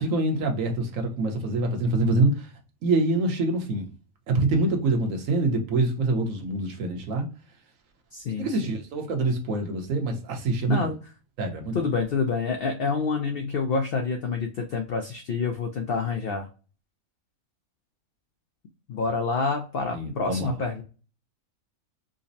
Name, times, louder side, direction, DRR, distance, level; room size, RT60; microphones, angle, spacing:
voice 1, 0.0-2.5 2.8-3.9 4.3-7.3 8.4-10.9 11.4-11.9 19.9-20.5, right 2 dB, 65° right, 1.2 m, -25 dB
voice 2, 8.1-8.8 10.7-11.0 11.7-16.5 18.9-20.8, left 4 dB, 70° left, 0.5 m, -27 dB
5.0 x 2.0 x 2.6 m
omnidirectional pair, 1.6 m